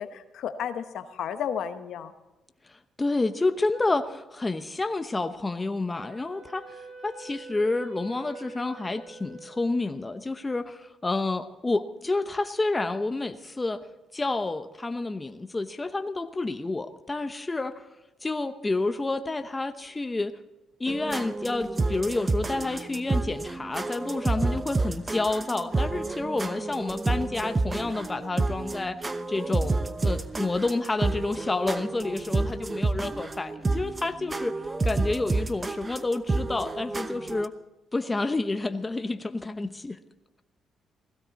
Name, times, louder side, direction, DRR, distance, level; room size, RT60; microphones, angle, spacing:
voice 1, 0.0-2.1, left 8 dB, 75° left, 10 dB, 1.0 m, -33 dB
voice 2, 3.0-6.7 7.0-13.8 14.1-17.8 18.2-20.3 20.8-29.0 29.3-34.5 34.8-37.5 37.9-40.0, left 2 dB, 20° left, 9 dB, 0.8 m, -29 dB
Wind instrument woodwind instrument, 6.0-10.3, right 3 dB, 80° right, 5.4 m, -45 dB
sound 1, 20.9-37.5, right 3 dB, 25° right, 0.8 m, -29 dB
17.0 x 15.5 x 4.1 m, 1.0 s
cardioid pair, 90°, 0 cm